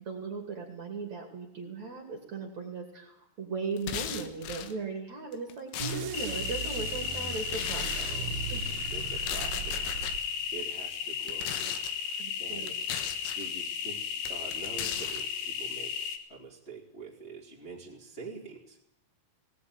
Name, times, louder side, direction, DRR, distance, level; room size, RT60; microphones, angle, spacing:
voice 1, 0.0-8.2 8.5-8.6 9.8-9.9 12.2-13.0, right 4 dB, 40° right, 2 dB, 3.1 m, -38 dB
sound 1, 3.8-4.7 5.3-6.4 7.5-8.2 9.1-10.2 11.2-11.9 12.7-13.5 14.2-15.2, left 10 dB, 80° left, 4.0 m, -37 dB
sound 2, 5.8-10.6, right 7 dB, 70° right, 2.3 m, -38 dB
sound 3, 6.1-16.2, left 7 dB, 60° left, 3.3 m, -35 dB
voice 2, 8.0-8.3 8.9-10.0 10.5-12.8 13.3-15.9 16.3-18.8, right 4 dB, 15° left, -4 dB, 2.5 m, -46 dB
19.5 x 19.0 x 9.8 m, 0.80 s
omnidirectional pair, 5.9 m